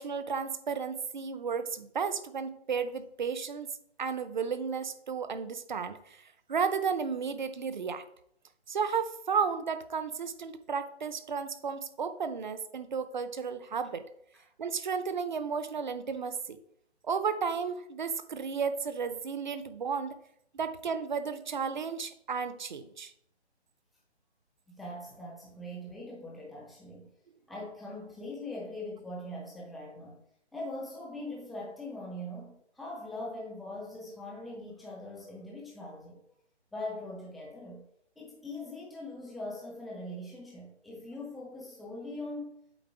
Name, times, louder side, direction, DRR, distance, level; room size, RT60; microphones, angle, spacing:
voice 1, 0.0-3.7 4.0-8.0 8.7-14.0 14.6-16.6 17.0-20.2 20.5-23.1, right 6 dB, 45° right, 11 dB, 0.6 m, -33 dB
voice 2, 24.7-27.1 27.5-30.2 30.5-36.2 36.7-37.9 38.2-42.5, left 1 dB, ahead, -4 dB, 0.4 m, -41 dB
8.0 x 3.8 x 4.7 m, 0.72 s
hypercardioid pair, 160°, 34 cm